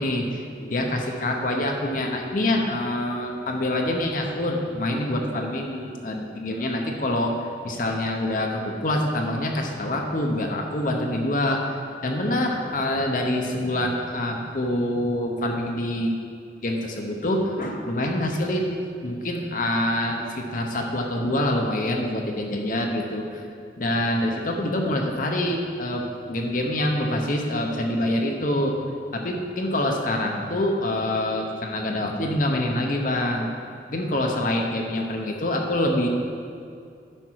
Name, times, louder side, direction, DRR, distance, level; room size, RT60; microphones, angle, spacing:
voice 1, 0.0-11.8 12.0-16.1 16.6-18.8 19.0-23.4 23.8-28.8 29.1-33.5 33.9-36.1, left 1 dB, 45° left, 2 dB, 0.8 m, -26 dB
9.9 x 6.0 x 4.6 m, 2.4 s
head